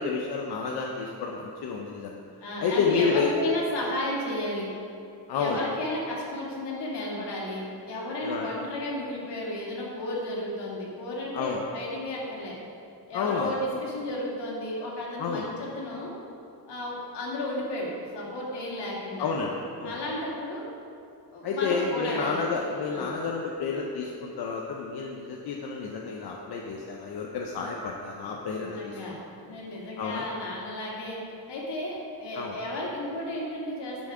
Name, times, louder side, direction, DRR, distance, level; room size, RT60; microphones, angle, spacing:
voice 1, 0.0-2.2 2.6-3.3 5.3-5.6 8.2-8.5 11.3-11.6 13.1-13.5 15.2-15.5 19.2-19.5 19.8-20.0 21.4-29.0 30.0-30.2 32.3-32.6, left 5 dB, 65° left, 0 dB, 0.9 m, -30 dB
voice 2, 2.4-4.7 5.3-12.6 13.1-16.1 16.7-19.3 19.8-20.6 21.3-22.5 22.9-23.1 28.3-31.2 31.5-34.1, left 1 dB, 85° left, -4 dB, 2.5 m, -33 dB
11.0 x 6.2 x 5.0 m, 2.6 s
wide cardioid pair, 165°, 41 cm